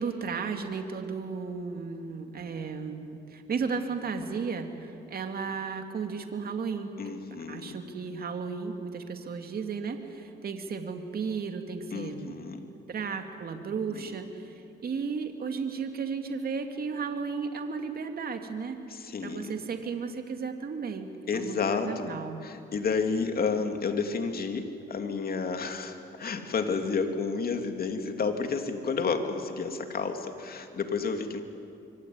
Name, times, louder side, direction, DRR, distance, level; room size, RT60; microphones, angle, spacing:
voice 1, 0.0-6.9 7.5-12.4 12.9-14.3 14.8-18.8 19.2-21.1 21.3-22.4, right 5 dB, 50° right, 5 dB, 2.5 m, -34 dB
voice 2, 7.0-7.8 11.9-12.6 13.9-14.1 18.9-19.6 21.3-22.1 22.4-31.4, left 5 dB, 50° left, 5 dB, 2.9 m, -31 dB
25.5 x 24.0 x 9.6 m, 2.6 s
cardioid pair, 90°, 20 cm